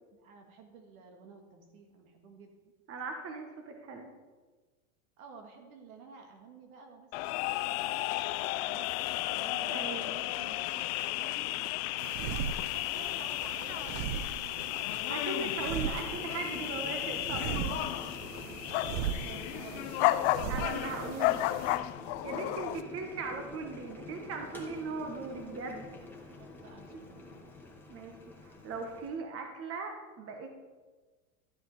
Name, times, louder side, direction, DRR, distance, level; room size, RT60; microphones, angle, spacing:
voice 1, 0.1-2.5 5.2-7.9 8.6-14.8 15.1-15.4 17.6-18.3 18.8-20.0 20.5-21.7 22.3-22.6 26.4-27.5, right 4 dB, 75° right, 3 dB, 2.1 m, -52 dB
voice 2, 2.9-4.1 9.7-10.2 15.1-17.6 20.5-21.4 22.2-25.9 26.9-27.0 27.9-28.2 28.4-30.6, right 4 dB, 35° right, 4 dB, 1.3 m, -39 dB
sound 1, 7.1-22.8, left 17 dB, 50° left, 0.4 m, -33 dB
sound 2, 12.0-21.8, right 9 dB, 55° right, 0.7 m, -39 dB
Boiling, 15.7-29.2, left 3 dB, 5° left, 1.7 m, -47 dB
12.5 x 7.9 x 4.3 m, 1.3 s
supercardioid pair, 115°, 43 cm